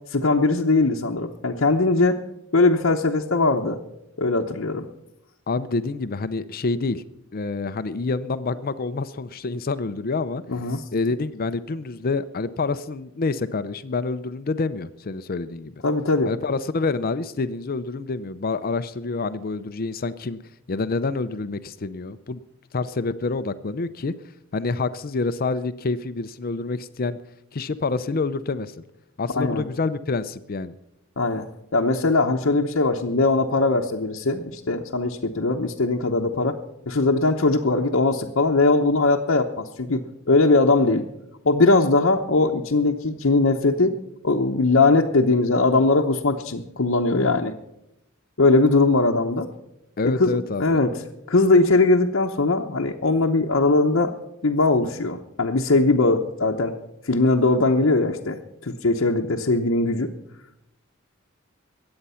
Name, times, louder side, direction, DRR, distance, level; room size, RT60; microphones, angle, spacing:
voice 1, 0.1-2.2 2.5-3.8 4.2-4.9 10.5-10.8 15.8-16.3 29.3-29.6 31.2-31.5 31.7-36.6 36.9-41.0 41.4-43.9 44.2-47.5 48.4-49.5 50.0-50.3 50.6-50.9 51.3-54.1 54.4-56.8 57.0-60.1, left 3 dB, 65° left, -1 dB, 0.9 m, -20 dB
voice 2, 5.5-7.0 7.3-10.4 10.9-15.7 16.2-20.4 20.7-22.4 22.7-24.1 24.5-27.2 27.5-28.7 29.2-30.7 50.0-50.8, left 3 dB, 45° left, 13 dB, 0.5 m, -27 dB
22.0 x 8.8 x 5.6 m, 0.87 s
head